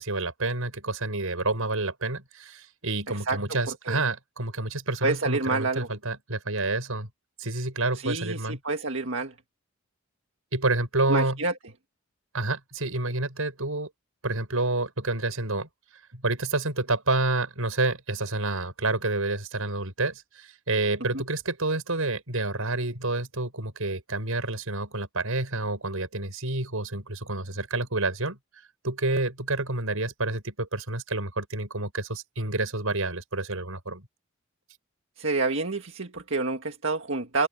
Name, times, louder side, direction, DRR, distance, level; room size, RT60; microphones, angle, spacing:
voice 1, 0.0-7.1 7.4-8.6 10.5-11.4 12.3-13.9 14.2-15.7 16.1-28.4 28.8-34.1, right 2 dB, 85° right, 6.2 m, -29 dB
voice 2, 3.1-3.4 3.9-4.0 5.0-5.9 8.0-9.3 11.1-11.5 21.1-21.2 35.2-37.5, right 3 dB, 65° right, 1.8 m, -28 dB
head